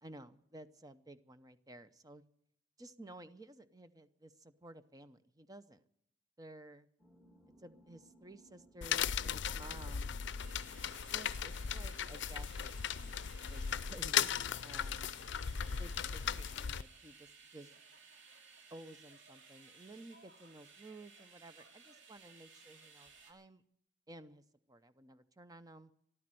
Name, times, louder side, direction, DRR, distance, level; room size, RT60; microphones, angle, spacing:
voice 1, 0.0-2.2 2.8-5.8 6.4-6.9 7.6-10.1 11.1-14.3 14.6-15.1 15.8-17.8 18.7-23.6 24.1-25.9, right 1 dB, 20° right, 11 dB, 0.7 m, -54 dB
sound 1, 7.0-16.5, right 1 dB, ahead, 2.2 m, -63 dB
sound 2, 8.8-16.8, left 8 dB, 65° left, 0.5 m, -37 dB
sound 3, 10.4-23.3, right 5 dB, 75° right, 3.1 m, -59 dB
14.0 x 12.5 x 7.6 m, 0.71 s
head